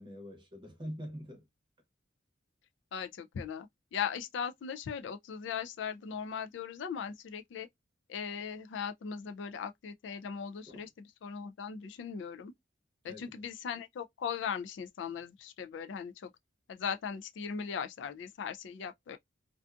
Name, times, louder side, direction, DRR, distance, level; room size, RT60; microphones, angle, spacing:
voice 1, 0.0-1.5 10.7-10.8 13.0-13.5, equal, 25° right, 0.8 m, -44 dB
voice 2, 2.9-7.7 8.1-10.9 11.2-12.5 13.0-16.3 16.7-19.2, left 7 dB, 65° left, 0.3 m, -38 dB
2.5 x 2.3 x 2.3 m
head